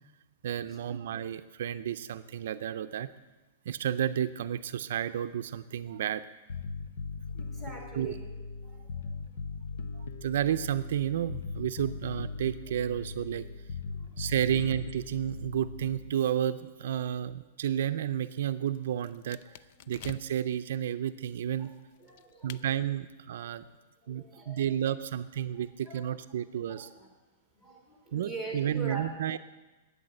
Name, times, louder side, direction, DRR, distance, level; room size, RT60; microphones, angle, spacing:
voice 1, 0.4-3.1 3.7-6.3 7.9-8.1 9.9-13.5 14.2-19.4 19.9-21.7 22.4-23.6 24.1-26.9 28.1-29.4, right 10 dB, 70° right, 11 dB, 0.5 m, -31 dB
Bass guitar, 6.5-16.1, left 4 dB, 80° left, 0.7 m, -39 dB
voice 2, 7.3-8.2 8.6-9.4 13.9-14.2 19.5-20.2 21.6-21.7 22.0-22.6 23.4-23.6 24.0-24.7 25.5-26.1 26.5-27.1 27.5-29.0, right 3 dB, 10° left, -1 dB, 3.0 m, -45 dB
sound 1, 17.7-20.6 21.3-22.7, left 11 dB, 45° left, 0.4 m, -50 dB
12.0 x 9.1 x 7.7 m, 1.1 s
supercardioid pair, 160°, 0 cm